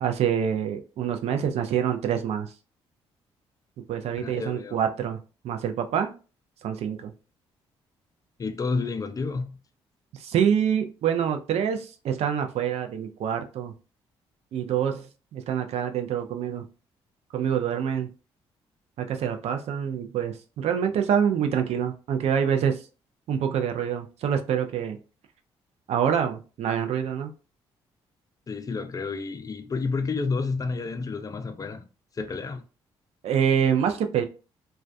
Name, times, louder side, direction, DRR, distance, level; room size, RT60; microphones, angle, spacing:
voice 1, 0.0-2.5 3.9-5.2 5.4-6.1 6.6-7.1 10.1-13.7 14.5-16.7 17.3-18.1 19.0-22.8 23.3-25.0 25.9-27.3 33.2-34.2, right 8 dB, 65° right, 0.4 m, -26 dB
voice 2, 4.2-4.8 8.4-9.6 28.5-31.8 32.1-32.6, left 4 dB, 30° left, 0.4 m, -30 dB
2.2 x 2.2 x 2.5 m
supercardioid pair, 65°, 11 cm